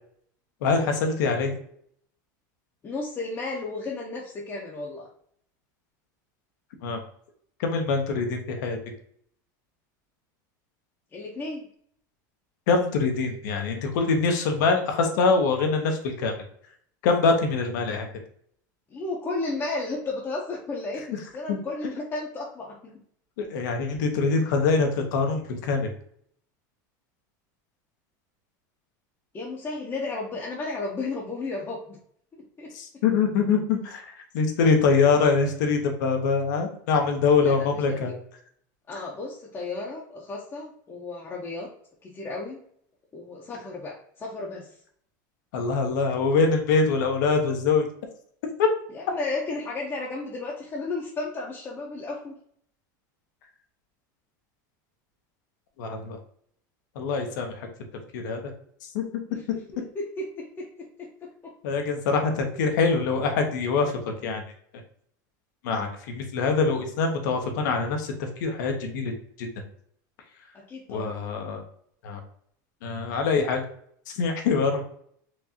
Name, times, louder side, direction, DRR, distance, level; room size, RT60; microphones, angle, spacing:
voice 1, 0.6-1.6 6.8-7.0 7.6-8.8 12.7-16.3 17.0-18.1 21.5-21.6 23.4-25.9 32.7-38.1 45.5-47.9 48.6-48.7 55.8-56.2 56.9-57.7 58.1-58.4 58.9-59.0 61.6-64.4 65.6-68.1 68.4-69.1 69.4-69.5 70.9-71.6 72.0-72.2 72.8-73.6 74.1-74.8, left 4 dB, 75° left, 4 dB, 0.9 m, -24 dB
voice 2, 2.8-5.1 11.1-11.7 18.9-22.9 29.3-32.0 32.6-32.7 37.4-38.1 38.9-41.7 42.0-42.6 43.1-44.7 48.9-52.4 59.3-60.7 61.0-61.5 70.5-71.1, left 3 dB, 25° left, -4 dB, 0.8 m, -33 dB
4.5 x 2.6 x 2.8 m, 0.64 s
supercardioid pair, 125°, 10 cm